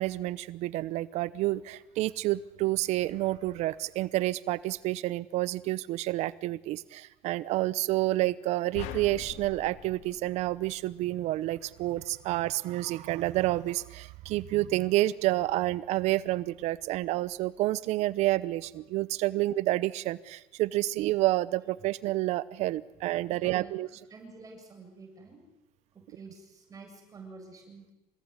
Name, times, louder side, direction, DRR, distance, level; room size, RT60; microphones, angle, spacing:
voice 1, 0.0-23.9, right 17 dB, 65° right, 18 dB, 0.9 m, -29 dB
sound 1, 8.7-11.2, left 10 dB, 75° left, 3.0 m, -43 dB
voice 2, 23.3-23.7 24.1-25.4 25.9-27.9, right 4 dB, 30° right, 4 dB, 7.8 m, -49 dB
28.0 x 19.0 x 9.8 m, 1.0 s
cardioid pair, 120°, 12 cm